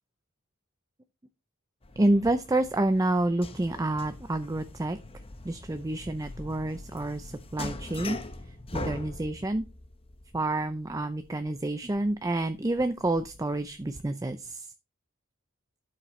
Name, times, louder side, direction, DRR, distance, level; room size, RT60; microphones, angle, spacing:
sound 1, 1.8-14.0, left 2 dB, 25° left, 0.9 m, -43 dB
voice 1, 2.0-5.0 5.4-8.2 8.7-9.6 10.3-14.7, right 2 dB, 15° right, 9 dB, 0.5 m, -28 dB
12.0 x 6.4 x 3.1 m, 0.28 s
head